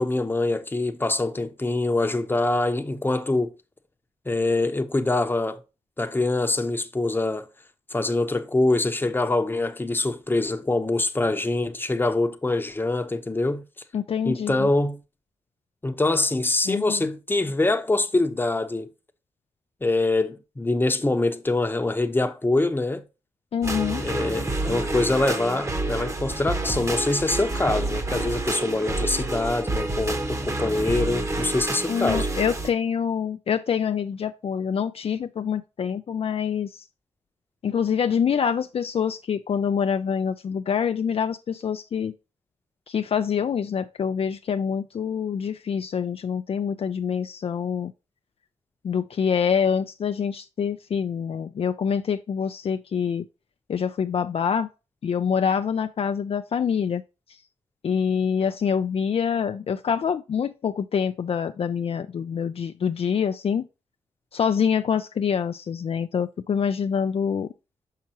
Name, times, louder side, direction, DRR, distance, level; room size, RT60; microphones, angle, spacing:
voice 1, 0.0-3.5 4.3-5.6 6.0-7.5 7.9-13.6 14.2-15.0 15.8-18.9 19.8-23.0 24.0-32.3, left 2 dB, 15° left, 0.8 m, -24 dB
voice 2, 13.9-14.7 16.7-17.1 23.5-24.0 31.9-36.9 37.6-42.1 42.9-47.9 48.8-53.2 53.7-54.7 55.0-57.0 57.8-63.7 64.3-67.5, left 7 dB, 55° left, 0.4 m, -26 dB
sound 1, 23.6-32.7, right 2 dB, 25° right, 1.1 m, -28 dB
5.8 x 5.7 x 2.9 m
cardioid pair, 75°, 12 cm